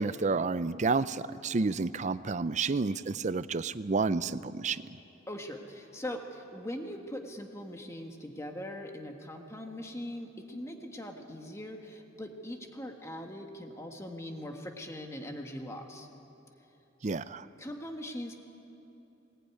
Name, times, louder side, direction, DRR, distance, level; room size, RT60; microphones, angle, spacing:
voice 1, 0.0-5.0 17.0-17.5, right 4 dB, 40° right, 15 dB, 0.5 m, -30 dB
voice 2, 5.3-16.1 17.6-18.4, left 1 dB, 15° left, 3 dB, 1.7 m, -41 dB
20.5 x 20.0 x 9.7 m, 2.9 s
head